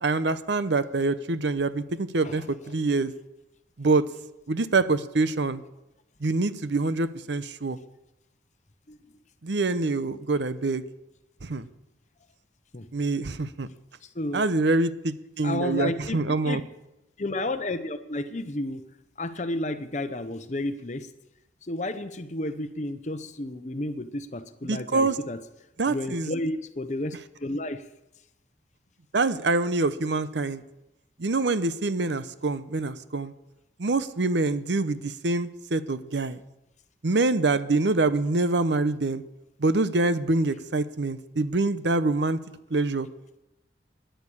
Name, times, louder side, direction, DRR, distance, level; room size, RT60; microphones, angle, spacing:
voice 1, 0.0-3.1 3.8-4.1 4.5-5.6 6.2-7.8 9.4-10.8 11.4-11.7 12.9-13.7 14.3-16.6 24.6-25.2 25.8-26.3 29.1-30.6 31.2-33.3 33.8-36.4 37.0-39.2 39.6-42.4 42.7-43.1, right 3 dB, 75° right, 14 dB, 0.8 m, -25 dB
voice 2, 15.4-16.2 16.4-16.6 17.2-18.8 19.2-21.1 21.6-25.4 25.9-27.8, left 2 dB, 40° left, 11 dB, 0.8 m, -31 dB
11.0 x 10.5 x 8.6 m, 0.90 s
head